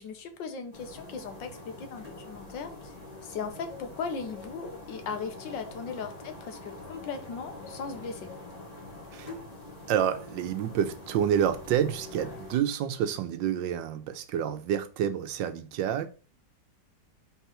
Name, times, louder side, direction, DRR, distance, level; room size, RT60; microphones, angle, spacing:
voice 1, 0.0-1.5 1.8-2.9 3.2-8.3, left 5 dB, 80° left, 1.7 m, -38 dB
sound 1, 0.7-12.6, left 2 dB, 20° left, 1.8 m, -45 dB
voice 2, 9.9-16.1, right 9 dB, 80° right, 1.4 m, -28 dB
4.7 x 3.9 x 5.7 m
omnidirectional pair, 2.0 m